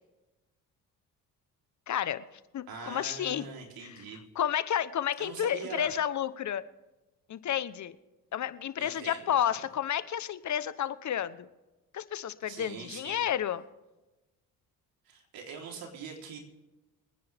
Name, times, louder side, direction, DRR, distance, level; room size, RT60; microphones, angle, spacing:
voice 1, 1.9-2.2 2.5-3.5 3.8-3.9 4.4-6.6 7.3-7.9 8.3-11.5 11.9-13.6, left 10 dB, 55° left, 14 dB, 1.0 m, -31 dB
voice 2, 2.7-4.2 5.2-5.9 8.8-9.7 12.5-13.2 15.0-16.4, right 5 dB, 75° right, 1 dB, 3.8 m, -43 dB
25.5 x 9.7 x 3.6 m, 1.1 s
supercardioid pair, 75°, 35 cm